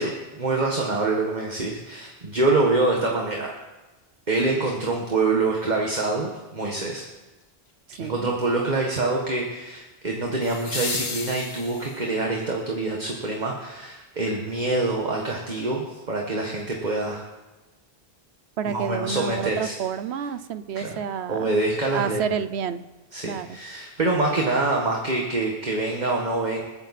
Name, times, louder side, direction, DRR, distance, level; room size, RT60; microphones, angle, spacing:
voice 1, 0.0-3.5 4.3-7.0 8.0-17.2 18.6-19.7 20.7-20.9 21.3-22.2 23.1-26.6, right 2 dB, 45° right, 0 dB, 1.7 m, -25 dB
sound 1, 4.8-4.9 10.4-12.2 14.4-14.5, left 5 dB, 75° left, 1.4 m, -33 dB
voice 2, 7.9-8.3 18.6-21.5 21.9-22.8 23.2-23.6, right 7 dB, 80° right, 13 dB, 1.0 m, -29 dB
27.5 x 9.3 x 4.2 m, 1.2 s
omnidirectional pair, 1.1 m